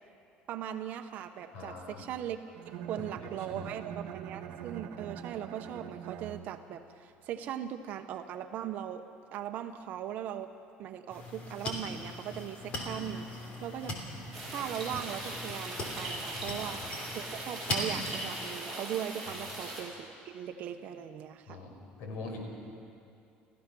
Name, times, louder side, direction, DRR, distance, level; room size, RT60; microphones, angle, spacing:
voice 1, 0.5-2.4 2.7-9.1 9.3-10.5 10.8-14.0 14.5-21.6, right 10 dB, 50° right, 8 dB, 0.9 m, -39 dB
voice 2, 1.5-2.0 3.0-3.1 3.5-3.7 16.3-16.9 21.5-22.4, left 3 dB, 85° left, 1 dB, 5.2 m, -43 dB
Bowed string instrument, 2.5-6.9, right 8 dB, 75° right, 1.4 m, -44 dB
sound 1, 11.1-18.5, left 1 dB, 40° left, 3.1 m, -40 dB
sound 2, 14.3-19.8, right 1 dB, ahead, 7.2 m, -40 dB
29.5 x 14.5 x 6.2 m, 2.6 s
cardioid pair, 170°, 4 cm